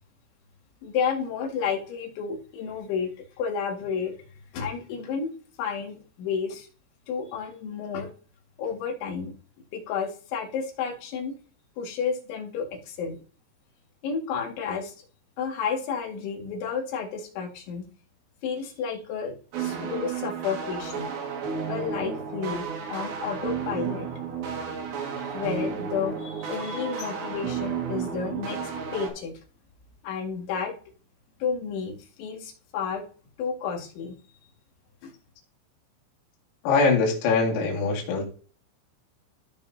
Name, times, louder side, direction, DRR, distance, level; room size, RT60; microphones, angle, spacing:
voice 1, 0.8-4.1 4.5-5.3 5.6-6.7 7.1-8.1 8.6-9.3 9.7-11.3 11.8-13.2 14.0-14.9 15.4-17.8 18.4-19.3 19.6-21.1 21.7-24.1 25.3-28.6 28.9-29.3 30.0-30.7 31.4-33.0 33.4-34.1 35.0-35.1, left 6 dB, 70° left, 0 dB, 4.1 m, -31 dB
sound 1, 19.5-29.1, right 6 dB, 60° right, 3.1 m, -32 dB
voice 2, 36.6-38.2, left 4 dB, 85° left, -1 dB, 4.8 m, -22 dB
15.0 x 5.2 x 2.7 m, 0.41 s
omnidirectional pair, 5.9 m